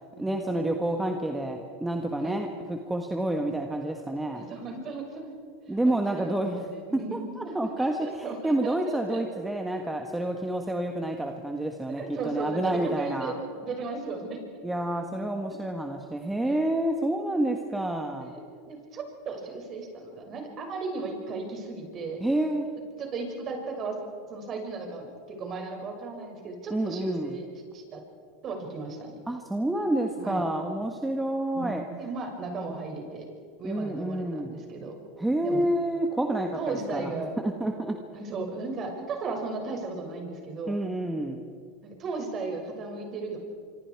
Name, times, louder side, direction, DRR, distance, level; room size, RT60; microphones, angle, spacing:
voice 1, 0.2-4.5 5.7-13.4 14.6-18.3 22.2-22.7 26.7-27.4 29.3-31.9 33.6-34.6 35.2-38.0 40.7-41.4, right 1 dB, 5° right, 3 dB, 1.6 m, -29 dB
voice 2, 4.3-5.3 5.7-9.2 12.0-14.4 16.4-16.6 18.2-18.4 18.7-22.2 23.0-24.0 24.3-28.0 28.4-29.2 30.2-30.4 31.5-33.3 33.6-34.9 35.4-35.6 36.5-37.3 38.1-40.8 41.8-43.4, right 3 dB, 35° right, 2 dB, 6.4 m, -36 dB
26.0 x 25.5 x 4.8 m, 2.2 s
supercardioid pair, 120°, 0 cm